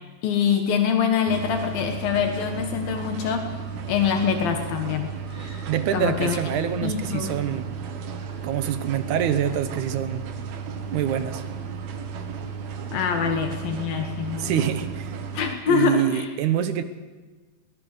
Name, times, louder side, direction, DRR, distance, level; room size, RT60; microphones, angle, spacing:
voice 1, 0.2-3.4 3.9-5.1 5.9-6.4 6.8-7.3 12.9-14.5 15.3-16.3, left 7 dB, 75° left, 5 dB, 3.0 m, -24 dB
sound 1, 1.3-15.6, right 6 dB, 90° right, 3.5 m, -34 dB
Screaming, 5.2-6.6 7.2-7.8 8.1-8.5, right 1 dB, 10° right, 7.2 m, -51 dB
voice 2, 5.7-7.7 8.4-10.3 10.9-11.4 14.4-15.2 15.7-16.8, right 9 dB, 65° right, 10 dB, 2.1 m, -25 dB
21.5 x 19.5 x 6.6 m, 1.3 s
omnidirectional pair, 4.3 m